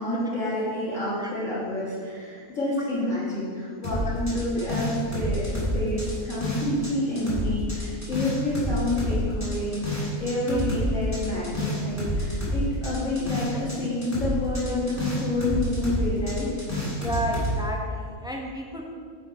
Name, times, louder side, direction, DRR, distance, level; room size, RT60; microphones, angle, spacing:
voice 1, 0.0-16.6, left 1 dB, 60° left, -10 dB, 2.1 m, -28 dB
sound 1, 3.8-6.9 7.2-13.8 14.0-17.5, equal, 10° left, 1.9 m, -28 dB
voice 2, 16.9-18.8, equal, 5° right, -1 dB, 0.6 m, -31 dB
9.2 x 5.0 x 4.4 m, 2.2 s
omnidirectional pair, 1.5 m